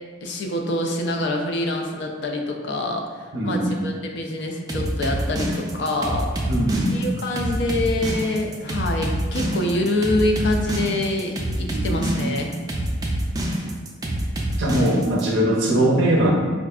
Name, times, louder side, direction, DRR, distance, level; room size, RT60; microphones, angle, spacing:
voice 1, 0.2-3.0 3.4-6.3 6.9-12.5, left 1 dB, 60° left, 1 dB, 0.5 m, -25 dB
voice 2, 3.3-3.8 6.5-7.0 11.6-12.3 14.6-16.3, right 1 dB, 60° right, -1 dB, 0.6 m, -21 dB
sound 1, 4.7-15.2, right 1 dB, 20° right, 0.4 m, -26 dB
5.1 x 2.4 x 2.3 m, 1.5 s
head